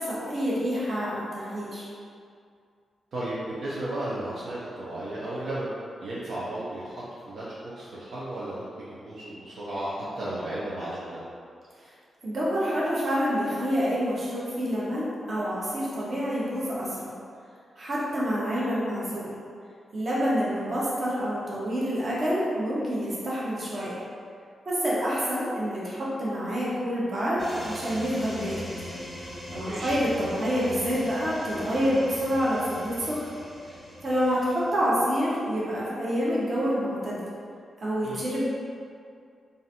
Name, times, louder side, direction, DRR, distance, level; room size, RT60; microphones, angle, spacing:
voice 1, 0.0-1.9 11.8-11.9 12.2-17.1 17.8-19.4 19.9-24.0 24.7-28.5 29.2-33.2 34.0-37.2 37.8-38.5, equal, 35° right, -7 dB, 1.0 m, -27 dB
voice 2, 3.1-5.7 6.0-11.2 29.7-30.0 38.0-38.2, right 1 dB, 60° right, -8 dB, 0.7 m, -34 dB
sound 1, 27.4-35.0, equal, 5° right, 1.3 m, -41 dB
3.9 x 2.6 x 4.1 m, 2.3 s
wide cardioid pair, 150°, 0 cm